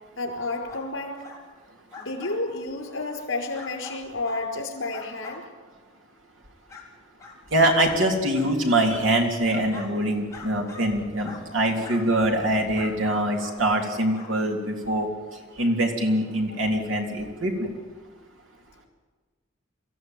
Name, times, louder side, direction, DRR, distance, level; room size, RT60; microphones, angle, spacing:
voice 1, 0.2-1.2 2.0-5.5, left 2 dB, 75° left, 3 dB, 4.9 m, -31 dB
sound 1, 0.7-0.9 1.2-1.4 1.9-2.4 2.9-3.0 3.5-4.4 4.9-5.4 6.0-6.1 6.7-6.8 7.2-7.4 7.8-8.0 8.3-8.5 8.9-9.9 10.3-10.9 11.2-11.4 11.8-12.0 12.7-13.9 14.1-14.3 14.8-14.9, left 4 dB, 15° left, 4.0 m, -43 dB
voice 2, 7.5-17.7, right 1 dB, 70° right, 2 dB, 3.5 m, -24 dB
23.5 x 15.0 x 9.2 m, 1.4 s
head